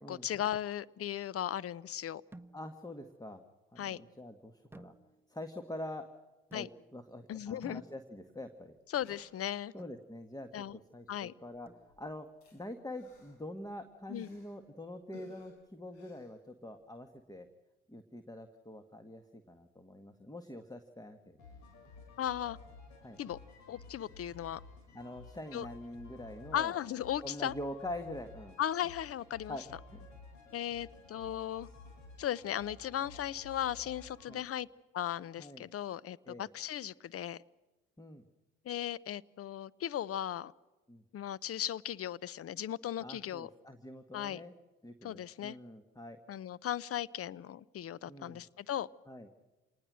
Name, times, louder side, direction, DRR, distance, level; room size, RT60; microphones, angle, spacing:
voice 1, 0.1-2.2 3.8-4.0 6.5-6.7 7.3-7.8 8.9-9.7 10.5-10.8 11.1-11.3 14.1-14.3 22.2-22.6 23.2-23.4 23.7-24.6 25.5-25.7 26.5-27.5 28.6-29.6 30.5-31.7 32.2-34.7 34.9-37.4 38.6-40.5 41.1-43.5 44.1-44.4 45.0-45.6 46.3-48.9, left 11 dB, 50° left, 0.8 m, -37 dB
sound 1, 2.3-2.9 4.7-5.5 6.5-7.1 7.6-8.4 9.8-10.1 11.7-12.3, right 2 dB, 5° right, 1.2 m, -55 dB
voice 2, 2.5-3.4 3.7-4.9 5.3-6.1 6.5-6.7 6.9-8.7 9.7-11.7 12.0-12.3 12.5-17.5 17.9-21.4 23.0-23.2 24.9-26.8 27.2-28.6 29.5-29.6 29.9-30.1 34.3-34.4 35.4-35.7 36.3-36.5 38.0-38.3 40.9-41.0 43.0-44.5 44.8-46.2 48.1-48.4 49.1-49.3, left 1 dB, 10° left, 1.8 m, -45 dB
sound 2, 8.1-8.2 8.4-8.5 8.8-9.8 10.9-11.2 11.4-14.7 15.1-17.0 17.3-17.4, left 2 dB, 90° left, 6.8 m, -61 dB
sound 3, 21.4-34.4, left 3 dB, 70° left, 6.7 m, -54 dB
27.5 x 19.5 x 6.4 m
hypercardioid pair, 60°, 30 cm